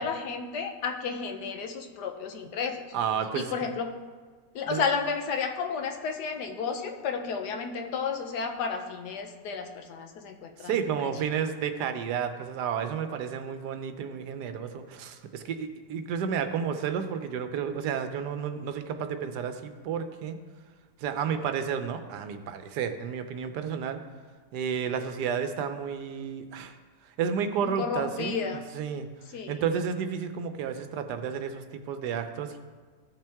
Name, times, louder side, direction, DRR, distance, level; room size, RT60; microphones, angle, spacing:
voice 1, 0.0-2.8 3.3-3.9 4.5-10.8 11.0-11.1 27.6-28.6 29.3-29.6, left 5 dB, 85° left, 4 dB, 1.5 m, -32 dB
voice 2, 2.9-3.7 4.7-4.8 10.6-20.4 21.0-24.0 24.5-26.8 27.2-29.1 29.5-32.6, right 7 dB, 85° right, 8 dB, 1.3 m, -31 dB
15.0 x 5.8 x 3.5 m, 1.5 s
omnidirectional pair, 1.7 m